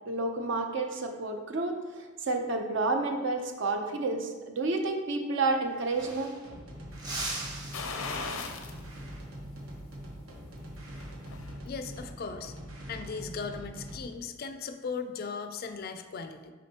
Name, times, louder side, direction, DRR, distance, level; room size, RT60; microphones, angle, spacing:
voice 1, 0.1-1.7 2.3-6.3, right 3 dB, 60° right, 4 dB, 0.7 m, -30 dB
sound 1, 5.4-5.5 5.7-6.6 7.0-8.7 11.2-11.5 12.9-13.4, right 2 dB, 20° right, 0.8 m, -40 dB
sound 2, 6.4-14.1, equal, 80° right, 1.1 m, -43 dB
sound 3, 7.7-8.8 9.2-9.3 10.8-11.6 12.0-12.1, left 4 dB, 85° left, 0.6 m, -37 dB
voice 2, 11.6-12.5 12.9-16.5, left 5 dB, 45° left, 8 dB, 0.4 m, -38 dB
6.4 x 5.3 x 2.9 m, 1.3 s
head